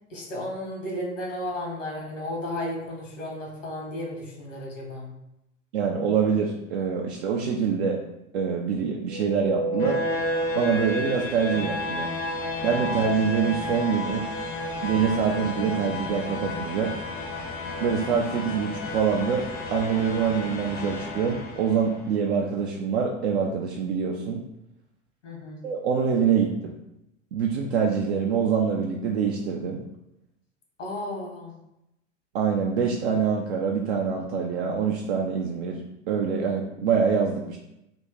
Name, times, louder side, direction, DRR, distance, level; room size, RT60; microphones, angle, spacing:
voice 1, 0.1-5.1 25.2-25.6 30.8-31.5, left 1 dB, 75° left, -1 dB, 1.2 m, -33 dB
voice 2, 5.7-8.0 8.3-10.0 10.5-12.1 12.6-14.3 14.8-16.9 17.8-19.5 19.7-24.4 25.6-26.7 27.3-29.8 32.3-37.6, right 6 dB, 55° right, 0 dB, 0.5 m, -25 dB
sound 1, 9.1-22.1, left 1 dB, 25° left, 0.5 m, -31 dB
2.9 x 2.5 x 3.6 m, 0.86 s
figure-of-eight pair, 90°, 37 cm